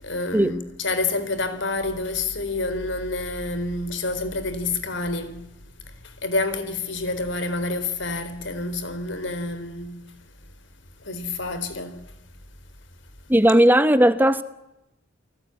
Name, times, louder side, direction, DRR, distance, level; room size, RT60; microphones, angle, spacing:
voice 1, 0.0-5.5 6.2-10.1 11.0-12.0, left 3 dB, 65° left, 4.0 m, -28 dB
voice 2, 13.3-14.4, right 1 dB, 10° right, 0.9 m, -16 dB
29.5 x 19.5 x 9.8 m
head